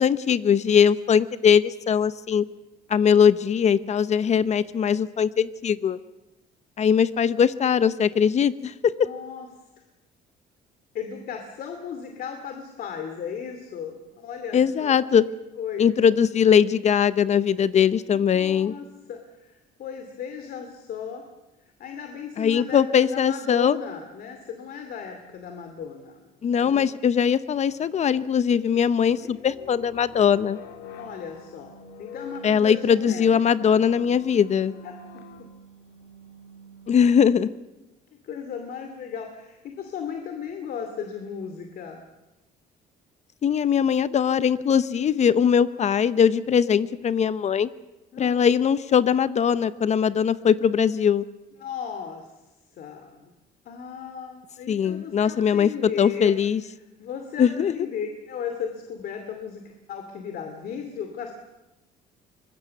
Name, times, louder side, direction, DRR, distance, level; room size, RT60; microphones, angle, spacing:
voice 1, 0.0-2.4 2.9-6.0 6.8-8.9 14.5-15.3 15.8-18.7 22.4-23.8 26.4-30.6 32.4-34.7 36.9-37.5 43.4-47.7 48.2-51.2 54.7-56.6 57.4-57.9, left 7 dB, 40° left, 15 dB, 0.8 m, -21 dB
voice 2, 9.0-9.5 10.9-15.0 15.6-16.1 18.1-21.2 21.6-26.3 26.6-26.9 29.0-29.3 31.0-33.3 33.6-33.8 34.8-34.9 38.2-42.0 48.1-48.5 51.6-52.3 52.8-53.3 53.7-56.4 57.0-61.3, left 7 dB, 60° left, 5 dB, 2.6 m, -36 dB
sound 1, 28.8-37.6, left 2 dB, 75° left, 3.0 m, -45 dB
24.5 x 21.0 x 6.9 m, 1.0 s
cardioid pair, 110°, 17 cm